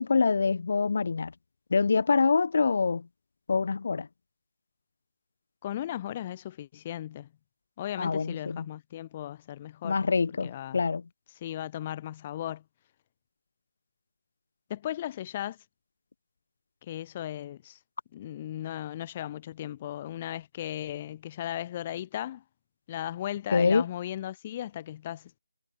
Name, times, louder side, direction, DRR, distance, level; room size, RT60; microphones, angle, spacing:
voice 1, 0.0-1.3 1.7-3.0 3.5-4.1 8.0-8.7 9.8-11.0 23.5-23.8, left 4 dB, 50° left, 2.5 m, -25 dB
voice 2, 5.6-7.3 7.8-10.0 10.4-10.8 11.3-12.6 14.7-15.6 16.8-17.8 18.1-22.4 22.9-25.3, left 12 dB, 25° left, 3.3 m, -36 dB
figure-of-eight pair, 160°, 0 cm